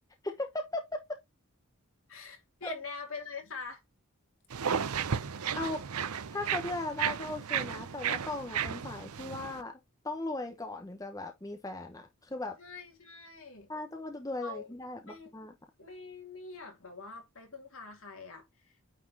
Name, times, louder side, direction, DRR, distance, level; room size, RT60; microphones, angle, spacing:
voice 1, 0.2-1.0 2.6-2.8 5.5-5.8 6.3-9.8 10.0-12.6 13.7-15.5, left 2 dB, 15° left, 0.9 m, -37 dB
voice 2, 2.1-3.8 4.7-5.0 12.6-13.7 14.4-14.7 15.1-15.4 15.8-18.8, left 4 dB, 65° left, 2.8 m, -44 dB
sound 1, 4.5-9.6, right 7 dB, 80° right, 0.6 m, -34 dB
9.2 x 4.2 x 2.8 m
head